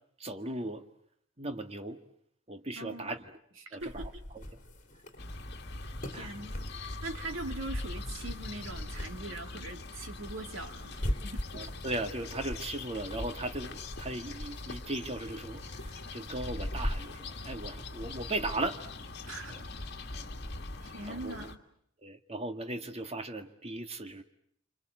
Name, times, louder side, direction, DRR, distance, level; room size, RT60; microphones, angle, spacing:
voice 1, 0.2-0.8 1.4-2.0 2.5-3.2 3.7-4.1 4.3-4.4 6.1-6.3 11.5-15.6 16.1-18.8 19.5-19.6 21.1-21.5 22.0-24.2, right 2 dB, 30° right, 6 dB, 1.7 m, -37 dB
voice 2, 2.8-3.1 3.6-4.2 6.1-6.7 7.0-11.5 19.3-19.6 20.1-20.2 20.8-21.6, right 2 dB, 75° right, 5 dB, 2.7 m, -42 dB
sound 1, 3.8-19.0, equal, 40° left, 3.3 m, -42 dB
sound 2, 5.2-21.6, left 2 dB, 55° left, 1.9 m, -42 dB
27.0 x 26.0 x 7.8 m, 0.70 s
head